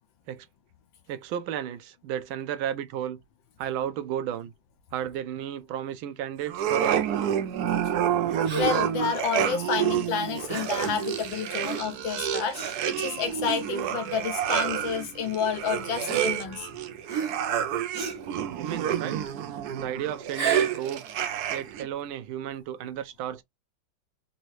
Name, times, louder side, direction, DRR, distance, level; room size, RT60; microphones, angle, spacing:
voice 1, 1.1-3.2 3.6-4.5 4.9-7.1 18.6-19.2 19.8-21.0 21.5-23.4, right 10 dB, 85° right, 1.5 m, -33 dB
sound 1, 6.5-21.9, right 9 dB, 70° right, 1.0 m, -29 dB
Gasp, 8.4-8.9 10.5-10.8 11.6-12.0 12.5-12.8 13.5-13.7 14.7-14.8 16.0-16.7 17.1-17.5 17.9-18.3 20.2-20.8, right 6 dB, 55° right, 1.9 m, -32 dB
voice 2, 8.5-16.7, left 7 dB, 75° left, 1.6 m, -30 dB
4.1 x 2.8 x 3.0 m
omnidirectional pair, 2.2 m